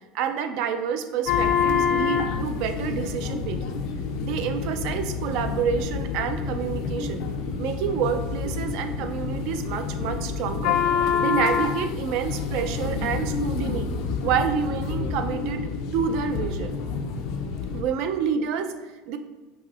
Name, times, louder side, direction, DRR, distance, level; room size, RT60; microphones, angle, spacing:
voice 1, 0.1-3.8 4.2-7.2 7.6-10.8 11.2-13.9 14.2-16.8 17.7-19.2, right 7 dB, 55° right, 8 dB, 0.3 m, -28 dB
sound 1, 1.3-17.8, left 6 dB, 60° left, 0.4 m, -27 dB
4.8 x 2.7 x 2.4 m, 1.2 s
cardioid pair, 155°, 0 cm